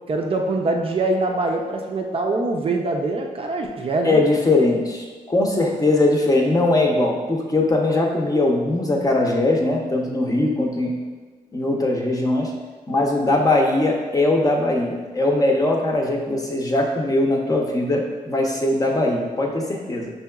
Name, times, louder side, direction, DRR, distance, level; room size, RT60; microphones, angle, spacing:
voice 1, 0.1-4.2, right 2 dB, 40° right, 1 dB, 0.5 m, -23 dB
voice 2, 4.0-10.9 11.5-12.5 12.9-20.1, left 2 dB, 25° left, -1 dB, 0.7 m, -20 dB
5.4 x 2.8 x 2.3 m, 1.4 s
cardioid pair, 80°, 15 cm